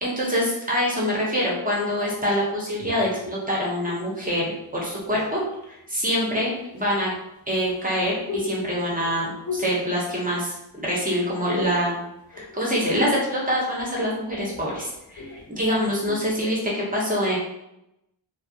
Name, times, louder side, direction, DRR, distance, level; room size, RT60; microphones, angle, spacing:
voice 1, 0.0-5.4 5.7-7.1 7.5-12.0 12.3-17.4, equal, 20° right, -4 dB, 0.7 m, -25 dB
sound 1, 2.0-4.2 4.9-5.7 6.8-10.8 11.1-11.9 12.2-13.1 13.4-16.7, left 3 dB, 40° left, 0.6 m, -38 dB
2.3 x 2.1 x 2.7 m, 0.86 s
wide cardioid pair, 110°, 47 cm